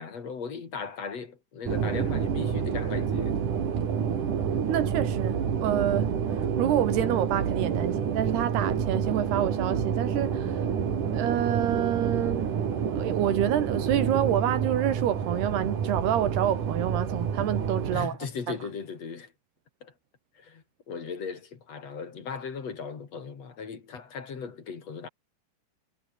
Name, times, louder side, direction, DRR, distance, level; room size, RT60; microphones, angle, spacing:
voice 1, 0.0-3.4 17.9-19.3 19.8-19.9 20.3-25.1, left 5 dB, 45° left, 3.7 m, -37 dB
sound 1, 1.7-18.1, right 7 dB, 55° right, 4.3 m, -28 dB
voice 2, 4.7-10.7 11.1-12.7 12.9-18.2, right 11 dB, 90° right, 4.1 m, -28 dB
omnidirectional pair, 4.5 m